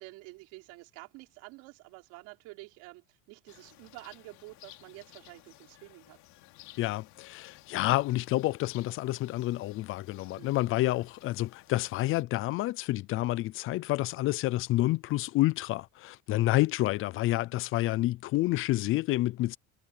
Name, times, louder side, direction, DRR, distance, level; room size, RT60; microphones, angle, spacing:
voice 1, 0.0-6.2 10.3-10.6, right 23 dB, 75° right, 4.1 m, -49 dB
sound 1, 3.5-12.2, left 18 dB, 65° left, 3.8 m, -56 dB
voice 2, 6.8-19.6, left 17 dB, 45° left, 0.4 m, -29 dB
cardioid pair, 155°, 31 cm